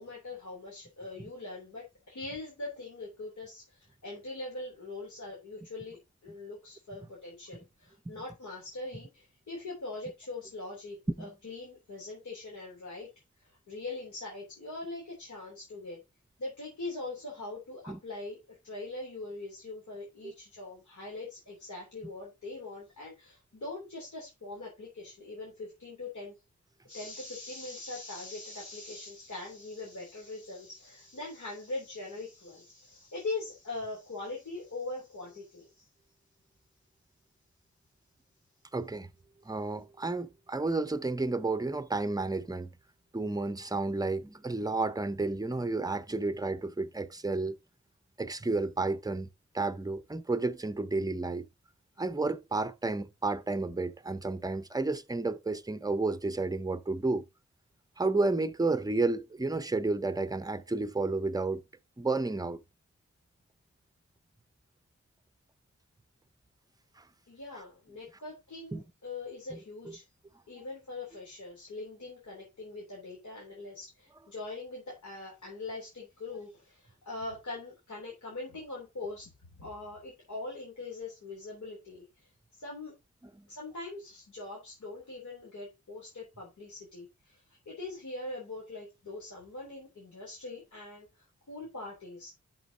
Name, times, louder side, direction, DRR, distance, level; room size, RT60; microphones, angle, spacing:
voice 1, 0.0-13.1 13.4-16.0 16.4-26.4 26.8-35.9 67.3-70.0 70.5-79.3 79.5-82.9 83.5-92.3, left 2 dB, 90° left, 3.5 m, -42 dB
voice 2, 38.7-39.1 39.5-42.7 43.1-47.6 48.2-49.3 49.5-51.5 52.0-57.2 58.0-61.6 62.0-62.6 67.0-67.1 68.7-68.8 69.5-69.6 69.9-70.0 83.4-83.5, right 3 dB, 15° right, 0.6 m, -31 dB
11.5 x 6.0 x 2.9 m
wide cardioid pair, 100°, 29 cm